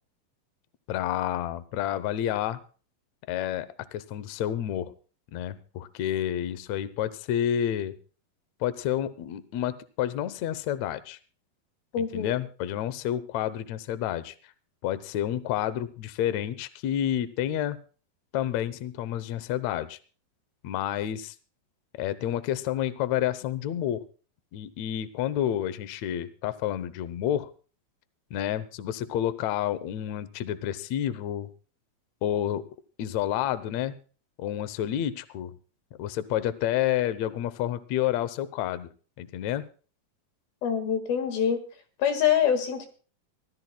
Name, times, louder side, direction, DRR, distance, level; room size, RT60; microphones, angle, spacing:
voice 1, 0.9-2.6 3.3-4.9 5.3-8.0 8.6-11.2 12.0-14.5 14.8-17.8 18.3-20.0 20.6-21.4 21.9-24.0 24.5-27.5 28.3-31.5 32.2-32.6 33.0-34.0 34.4-35.6 36.0-38.9 39.2-39.7, left 11 dB, 70° left, 14 dB, 1.8 m, -29 dB
voice 2, 11.9-12.4 40.6-41.6 42.0-42.9, left 8 dB, 90° left, 6 dB, 3.7 m, -25 dB
24.5 x 15.0 x 2.3 m, 0.38 s
omnidirectional pair, 4.1 m